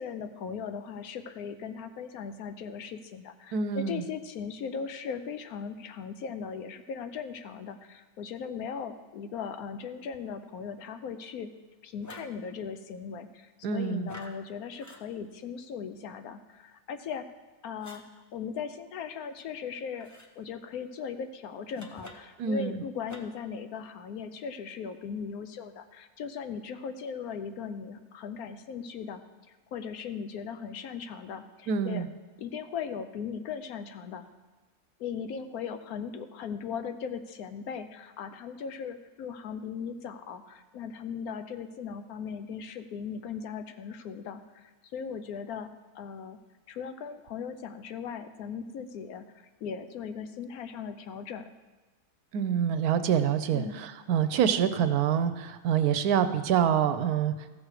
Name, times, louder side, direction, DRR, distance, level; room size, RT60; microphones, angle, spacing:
voice 1, 0.0-11.5 11.8-17.3 17.6-20.1 20.4-29.2 29.5-32.1 32.4-34.3 35.0-45.7 45.9-46.4 46.7-51.5 53.5-53.8, left 6 dB, 75° left, 9 dB, 1.1 m, -38 dB
voice 2, 3.5-4.0 13.6-14.1 22.4-22.8 31.7-32.1 52.3-57.5, right 8 dB, 75° right, 11 dB, 1.1 m, -26 dB
sound 1, 12.0-12.4 14.1-14.4 14.8-15.0 17.8-18.0 20.0-20.3 21.7-22.4 23.1-23.5, left 1 dB, 20° left, 0.5 m, -47 dB
14.5 x 6.4 x 4.9 m, 1.2 s
omnidirectional pair, 1.7 m